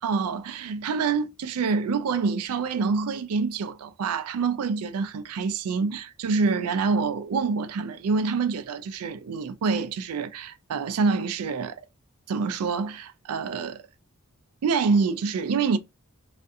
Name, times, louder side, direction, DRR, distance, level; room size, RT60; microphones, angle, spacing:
voice 1, 0.0-11.8 12.3-13.8 14.6-15.8, right 4 dB, 80° right, 0.4 m, -26 dB
2.5 x 2.3 x 2.6 m
head